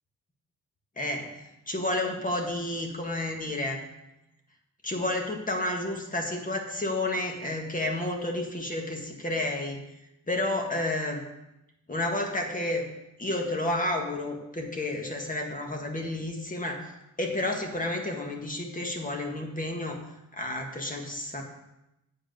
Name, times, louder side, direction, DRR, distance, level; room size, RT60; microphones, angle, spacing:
voice 1, 1.0-3.8 4.8-9.8 10.3-11.2 11.9-12.9 13.2-16.9 17.2-20.0 20.3-21.4, left 1 dB, 25° left, 2 dB, 1.8 m, -31 dB
8.7 x 5.0 x 7.8 m, 0.91 s
cardioid pair, 100°, 32 cm